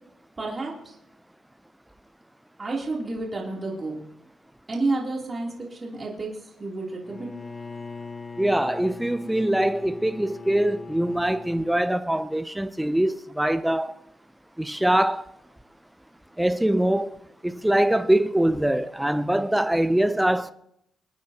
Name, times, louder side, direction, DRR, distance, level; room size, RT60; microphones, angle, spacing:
voice 1, 0.4-0.9 2.6-4.0 4.7-6.3 6.6-7.3, right 2 dB, 30° right, 3.2 m, -30 dB
Bowed string instrument, 7.0-11.8, left 3 dB, 30° left, 1.2 m, -40 dB
voice 2, 8.4-13.9 14.6-15.2 16.4-17.2 17.4-20.5, right 1 dB, 5° right, 0.6 m, -23 dB
25.5 x 9.4 x 2.9 m
cardioid pair, 90°, 0 cm